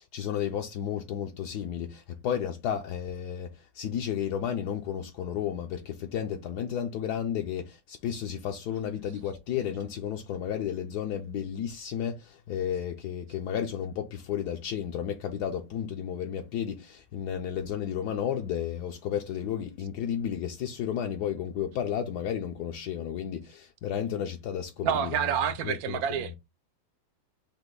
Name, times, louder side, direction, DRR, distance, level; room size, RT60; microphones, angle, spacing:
voice 1, 0.0-25.2 25.6-26.3, left 9 dB, 75° left, 1.1 m, -32 dB
voice 2, 24.8-26.4, right 8 dB, 70° right, 1.0 m, -28 dB
5.6 x 2.1 x 3.8 m
omnidirectional pair, 1.8 m